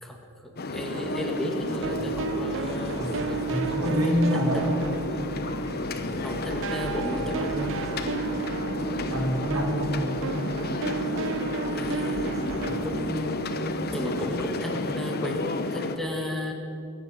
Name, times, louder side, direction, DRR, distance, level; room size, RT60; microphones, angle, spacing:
voice 1, 0.0-4.7 5.9-7.8 11.7-13.5 13.8-16.5, equal, ahead, 0 dB, 1.8 m, -34 dB
sound 1, 0.6-16.0, left 2 dB, 45° left, 0.9 m, -32 dB
sound 2, 0.9-6.1 6.5-14.2, right 6 dB, 60° right, 0.4 m, -34 dB
sound 3, 1.6-12.6, right 1 dB, 15° right, 2.1 m, -42 dB
voice 2, 3.0-4.8 9.1-10.3, left 1 dB, 80° right, 0 dB, 3.3 m, -27 dB
21.5 x 8.3 x 7.4 m, 2.6 s
head